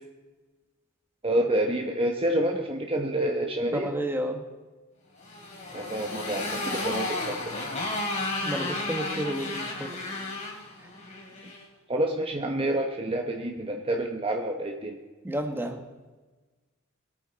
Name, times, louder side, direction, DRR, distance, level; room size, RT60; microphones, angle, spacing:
voice 1, 1.2-3.9 5.7-7.4 11.9-15.0, right 1 dB, 25° right, 2 dB, 1.0 m, -28 dB
voice 2, 3.7-4.4 8.4-10.2 10.8-10.9 15.2-15.9, right 1 dB, 10° right, 4 dB, 1.3 m, -31 dB
Motorcycle, 5.2-11.6, left 2 dB, 35° left, 2.8 m, -33 dB
22.0 x 9.0 x 4.1 m, 1.3 s
head